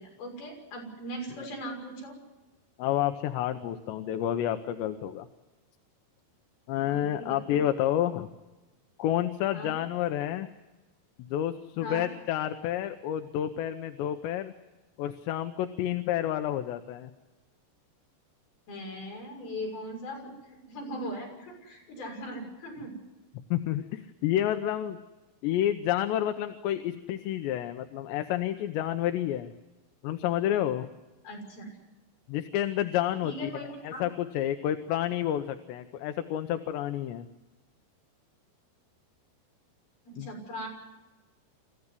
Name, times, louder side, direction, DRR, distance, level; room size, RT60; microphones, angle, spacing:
voice 1, 0.0-2.2 6.8-7.8 9.5-9.7 11.8-12.1 18.7-22.9 31.2-31.7 33.2-34.0 40.1-40.7, equal, 60° left, 0 dB, 8.1 m, -39 dB
voice 2, 2.8-5.3 6.7-8.3 9.0-10.5 11.3-14.5 15.0-17.1 23.5-25.0 25.4-29.5 30.0-30.9 32.3-33.5 33.8-37.3 40.2-40.3, left 11 dB, 85° left, 9 dB, 3.1 m, -29 dB
28.0 x 14.5 x 9.8 m, 1.1 s
omnidirectional pair, 5.0 m